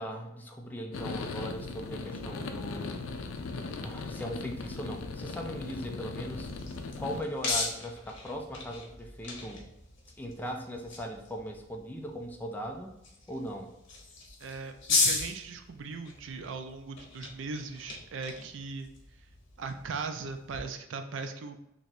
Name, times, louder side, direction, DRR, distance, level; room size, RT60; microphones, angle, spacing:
voice 1, 0.0-3.0 3.8-6.5 7.0-9.6 10.2-12.9 13.3-13.7, equal, 10° left, 1 dB, 0.4 m, -39 dB
sound 1, 0.9-7.2, left 3 dB, 80° left, 0.4 m, -38 dB
sound 2, 6.1-20.6, left 3 dB, 65° left, 0.9 m, -37 dB
voice 2, 14.4-18.9 19.6-21.6, right 4 dB, 65° right, 7 dB, 0.4 m, -39 dB
3.0 x 2.5 x 4.2 m, 0.83 s
head